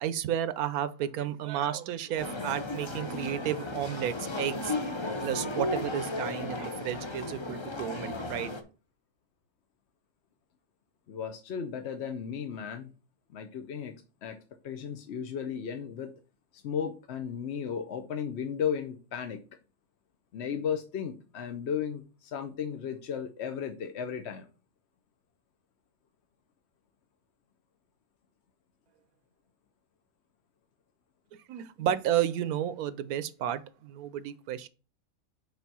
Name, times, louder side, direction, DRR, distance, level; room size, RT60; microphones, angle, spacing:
voice 1, 0.0-4.7 5.2-8.5 31.5-34.7, right 10 dB, 80° right, 1.1 m, -32 dB
sound 1, 2.2-8.6, left 2 dB, 30° left, 0.6 m, -35 dB
voice 2, 11.1-12.9 13.3-13.9 14.2-14.4 14.6-16.1 16.5-19.4 20.3-24.5, left 7 dB, 55° left, 0.9 m, -35 dB
5.4 x 4.5 x 6.0 m
omnidirectional pair, 1.5 m